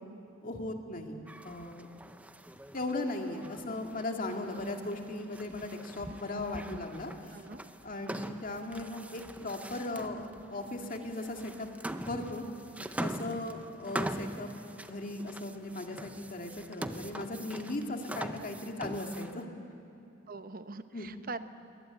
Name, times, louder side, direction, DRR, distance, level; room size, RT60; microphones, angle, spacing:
voice 1, 0.4-1.9 2.7-7.4 7.8-11.7 12.1-12.4 13.0-14.5 14.8-19.5 20.9-21.1, left 2 dB, 45° left, 3 dB, 2.1 m, -37 dB
sound 1, 1.3-19.4, right 1 dB, 5° right, 0.6 m, -43 dB
voice 2, 7.3-7.6 18.4-18.5 18.7-18.9 20.3-21.4, right 3 dB, 50° right, 11 dB, 0.9 m, -43 dB
21.5 x 19.0 x 9.2 m, 2.7 s
head